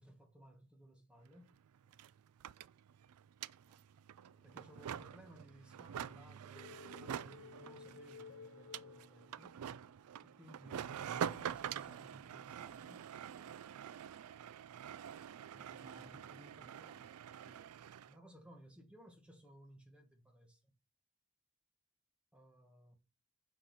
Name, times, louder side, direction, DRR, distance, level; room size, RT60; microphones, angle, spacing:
voice 1, 0.0-1.5 4.4-9.5 10.2-13.0 15.5-16.2 18.1-20.7 22.3-23.0, equal, 5° right, 1.5 m, -60 dB
sound 1, 1.3-1.4 1.5-18.1, right 9 dB, 90° right, 0.4 m, -46 dB
voice 2, 3.6-4.4 15.8-17.2 17.4-17.9, right 1 dB, 20° right, 0.8 m, -63 dB
sound 2, 6.6-9.7, left 5 dB, 60° left, 0.5 m, -55 dB
6.8 x 4.6 x 5.8 m
head